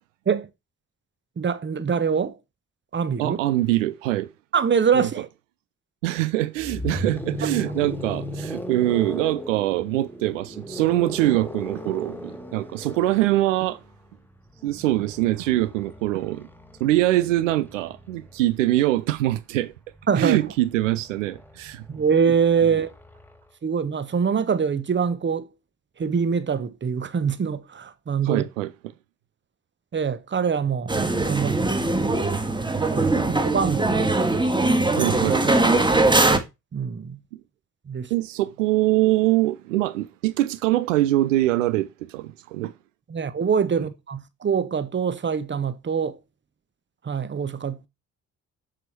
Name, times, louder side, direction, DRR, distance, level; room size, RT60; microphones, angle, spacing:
voice 1, 1.4-2.4 2.9-3.4 4.5-5.3 20.1-20.4 21.9-22.9 23.6-25.5 26.0-28.5 29.9-30.9 31.2-32.2 32.8-34.1 34.9-35.1 36.7-37.2 37.9-38.1 43.1-46.2 47.0-47.8, right 6 dB, 30° right, 1.2 m, -24 dB
voice 2, 3.2-4.3 4.9-5.1 6.0-13.8 14.6-16.5 16.8-19.7 20.1-21.8 28.2-28.7 34.9-35.6 38.1-42.7, right 16 dB, 75° right, 0.6 m, -23 dB
sound 1, 6.6-18.5 19.8-23.4, equal, 5° left, 1.9 m, -37 dB
sound 2, 30.9-36.4, right 2 dB, 10° right, 1.9 m, -21 dB
7.6 x 7.1 x 4.5 m
figure-of-eight pair, 40°, 38 cm